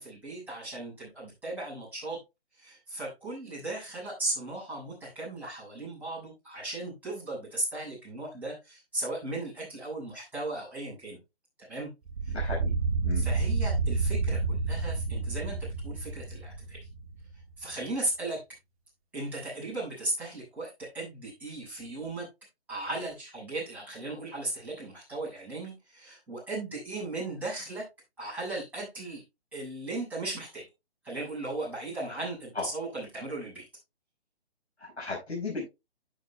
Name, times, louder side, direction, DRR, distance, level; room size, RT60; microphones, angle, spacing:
voice 1, 0.0-2.2 2.6-11.2 11.7-11.9 12.2-12.3 13.1-16.9 17.6-18.4 19.1-22.3 22.7-27.9 28.2-29.2 29.5-30.6 31.0-33.7, right 2 dB, 5° right, -8 dB, 7.0 m, -36 dB
sound 1, 12.1-17.3, right 4 dB, 35° right, 2.0 m, -30 dB
voice 2, 12.3-12.7 13.0-13.3 32.5-32.7 34.8-35.6, left 3 dB, 80° left, -3 dB, 5.6 m, -35 dB
12.5 x 9.0 x 2.2 m, 0.24 s
figure-of-eight pair, 145°, 33 cm